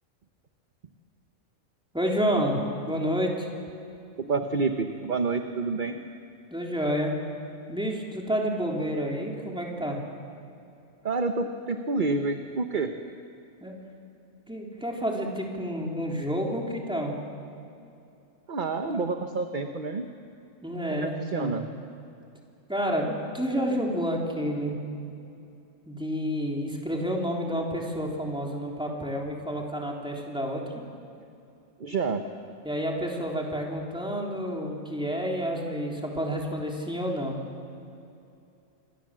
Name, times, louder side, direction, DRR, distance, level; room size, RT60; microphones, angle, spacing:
voice 1, 1.9-3.5 6.5-7.1 7.7-10.0 13.6-13.8 14.5-17.1 18.8-19.2 20.6-21.5 22.7-24.7 25.9-30.6 32.6-37.4, equal, 5° right, -1 dB, 3.5 m, -29 dB
voice 2, 4.3-6.0 11.0-12.9 18.5-20.1 21.0-21.7 31.8-32.2, right 4 dB, 40° right, 6 dB, 1.1 m, -28 dB
27.0 x 22.5 x 7.6 m, 2.7 s
omnidirectional pair, 1.4 m